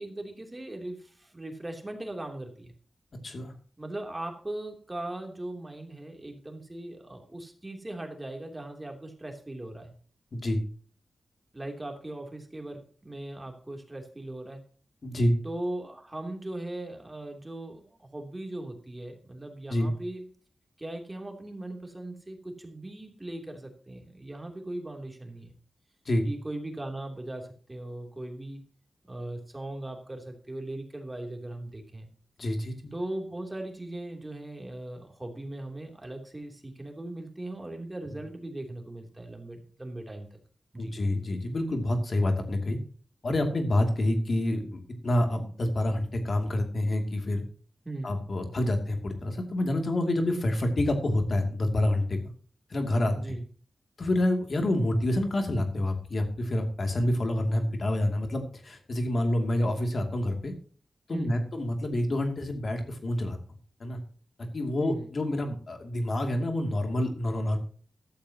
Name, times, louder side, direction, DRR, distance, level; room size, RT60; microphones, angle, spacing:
voice 1, 0.0-2.7 3.8-9.9 11.5-14.6 15.4-20.2 20.8-25.5 26.2-28.6 29.0-32.1 32.9-40.3 40.7-40.9 47.8-48.1 53.1-53.4 61.1-61.4 64.8-65.1, right 1 dB, 20° right, 2 dB, 3.1 m, -39 dB
voice 2, 3.2-3.5 10.3-10.6 15.0-15.3 19.7-19.9 26.0-26.2 32.4-32.9 40.8-42.8 43.2-47.4 48.0-52.2 52.7-53.4 54.0-60.5 61.1-63.4 63.8-64.0 64.4-67.6, left 1 dB, 55° left, 4 dB, 2.7 m, -27 dB
14.5 x 12.5 x 3.0 m, 0.42 s
wide cardioid pair, 80°, 0 cm